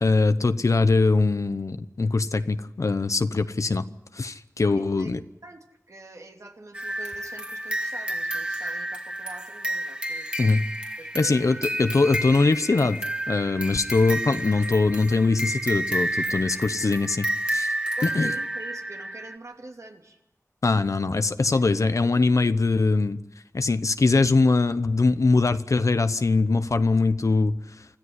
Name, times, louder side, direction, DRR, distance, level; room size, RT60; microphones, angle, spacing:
voice 1, 0.0-3.8 4.1-5.2 10.4-10.7 11.1-13.0 13.3-17.7 18.0-18.3 20.6-23.2 23.5-27.9, left 3 dB, 75° left, 11 dB, 0.9 m, -22 dB
voice 2, 4.6-10.3 11.0-11.4 18.0-20.2 21.5-21.7, right 2 dB, 70° right, 2 dB, 2.8 m, -45 dB
sound 1, 6.7-19.4, right 1 dB, 20° right, 2.3 m, -30 dB
25.5 x 14.0 x 9.6 m, 0.84 s
wide cardioid pair, 65°, 5 cm